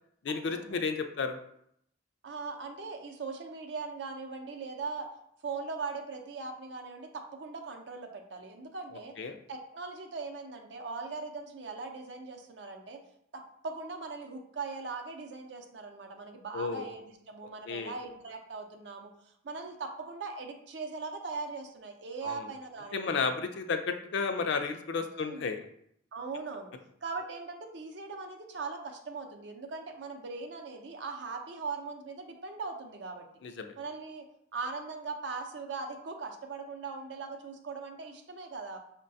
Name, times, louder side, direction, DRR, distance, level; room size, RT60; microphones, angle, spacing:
voice 1, 0.2-1.4 8.9-9.4 16.5-16.8 17.7-17.9 22.2-22.4 22.9-25.7 33.4-33.7, left 5 dB, 60° left, 7 dB, 0.4 m, -32 dB
voice 2, 2.2-5.1 5.4-9.1 9.5-13.0 13.3-23.2 25.1-25.5 26.1-26.7 27.0-33.3 33.8-34.3 34.5-38.8, right 4 dB, 65° right, 4 dB, 0.5 m, -40 dB
5.4 x 2.2 x 2.6 m, 0.72 s
head